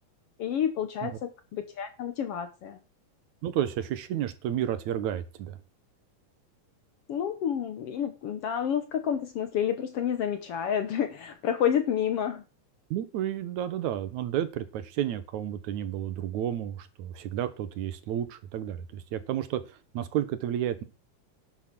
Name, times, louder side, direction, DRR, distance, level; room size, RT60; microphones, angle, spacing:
voice 1, 0.4-2.8 7.1-12.4, left 9 dB, 65° left, 1.6 m, -29 dB
voice 2, 3.4-5.6 12.9-20.8, right 11 dB, 75° right, 2.3 m, -31 dB
11.0 x 7.1 x 6.0 m
omnidirectional pair, 3.5 m